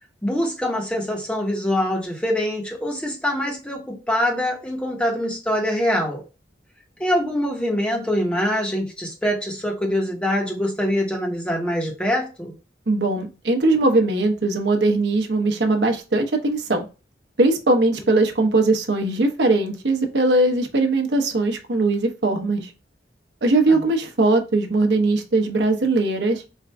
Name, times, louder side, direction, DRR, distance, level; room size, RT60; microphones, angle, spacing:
voice 1, 0.2-6.2 7.0-12.5 23.7-23.8, equal, 5° left, 1.1 m, -24 dB
voice 2, 12.9-16.8 17.4-22.7 23.4-26.4, right 2 dB, 70° right, 0.9 m, -20 dB
4.4 x 2.5 x 3.4 m
head